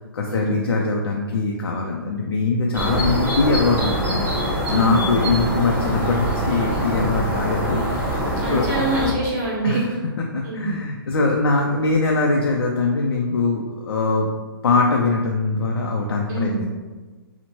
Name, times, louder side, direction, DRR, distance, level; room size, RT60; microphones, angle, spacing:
voice 1, 0.1-8.2 8.5-8.6 9.6-9.8 10.3-14.3 14.6-16.5, left 3 dB, 90° left, 0 dB, 0.4 m, -22 dB
sound 1, 2.7-9.1, equal, 10° right, 0.8 m, -24 dB
voice 2, 4.7-5.1 8.4-9.8 10.4-10.7 16.3-16.6, right 3 dB, 45° right, -4 dB, 1.1 m, -25 dB
2.8 x 2.1 x 2.9 m, 1.3 s
hypercardioid pair, 140°, 12 cm